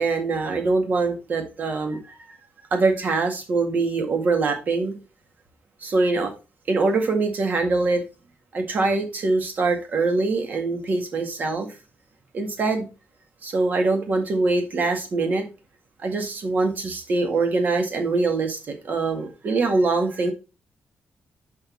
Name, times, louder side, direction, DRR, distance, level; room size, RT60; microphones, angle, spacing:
voice 1, 0.0-2.1 2.7-4.9 5.8-6.3 6.7-8.0 8.5-11.7 12.3-12.8 13.4-15.4 16.0-20.3, right 3 dB, 50° right, 1.8 m, -23 dB
6.4 x 5.2 x 4.5 m
wide cardioid pair, 140°, 4 cm